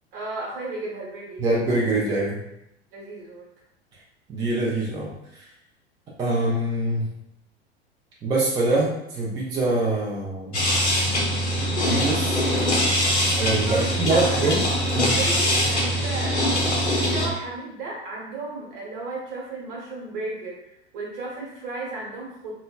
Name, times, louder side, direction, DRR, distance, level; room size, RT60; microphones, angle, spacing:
voice 1, 0.1-1.4 2.9-3.5 13.3-14.6 15.0-16.5 17.0-20.6 20.9-22.5, right 2 dB, 55° right, -3 dB, 1.0 m, -34 dB
voice 2, 1.4-2.4 4.3-5.4 6.2-7.1 8.2-10.6 11.8-12.4 13.4-14.6 14.9-15.2, right 2 dB, 10° right, -5 dB, 0.3 m, -24 dB
industrial machine hydraulic, 10.5-17.3, equal, 90° left, 0.5 m, -22 dB
2.9 x 2.0 x 2.2 m, 0.79 s
figure-of-eight pair, 80°, 33 cm